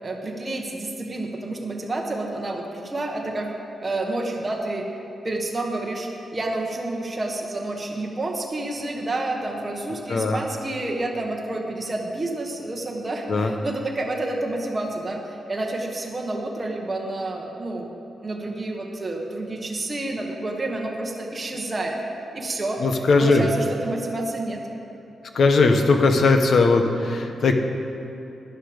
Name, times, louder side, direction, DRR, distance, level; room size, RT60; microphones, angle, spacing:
voice 1, 0.0-3.5 3.8-4.9 5.2-17.9 18.2-22.0 22.3-22.8 23.2-24.6, right 2 dB, 20° right, 0 dB, 1.1 m, -29 dB
voice 2, 10.1-10.4 13.3-13.5 22.8-23.5 25.3-27.6, left 3 dB, 50° left, 5 dB, 0.9 m, -19 dB
12.0 x 10.0 x 5.1 m, 2.9 s
wide cardioid pair, 175°, 0 cm